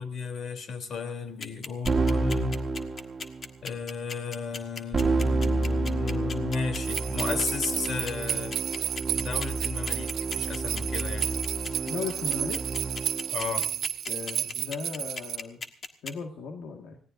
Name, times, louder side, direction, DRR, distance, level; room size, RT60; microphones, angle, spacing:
voice 1, 0.0-2.6 3.6-8.6 9.2-11.3 13.3-13.7, left 5 dB, 60° left, 7 dB, 3.4 m, -34 dB
sound 1, 1.4-16.1, left 4 dB, 45° left, 1.5 m, -37 dB
Keyboard (musical), 1.9-3.5 4.9-13.3, right 3 dB, 35° right, 1.7 m, -30 dB
sound 2, 6.8-15.4, right 10 dB, 70° right, 0.7 m, -32 dB
voice 2, 11.8-12.6 14.1-15.6 16.0-17.0, left 5 dB, 80° left, 2 dB, 1.9 m, -36 dB
25.0 x 17.5 x 2.7 m, 0.42 s
cardioid pair, 90°, 0 cm